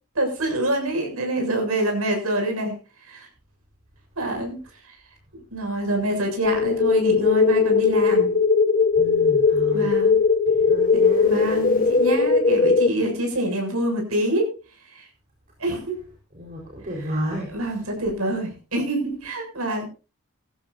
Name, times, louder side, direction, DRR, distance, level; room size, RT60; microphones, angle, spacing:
voice 1, 0.2-3.3 4.2-4.6 4.8-5.0 5.3-8.3 9.7-10.2 10.9-14.5 14.9-15.1 15.6-16.0 17.5-19.9, right 1 dB, 85° right, 3 dB, 7.1 m, -26 dB
sound 1, 6.4-12.9, left 4 dB, 40° left, 1.2 m, -19 dB
voice 2, 8.9-10.0 10.6-11.3 16.3-17.5, equal, 40° right, -2 dB, 4.6 m, -31 dB
20.0 x 14.5 x 2.7 m, 0.32 s
head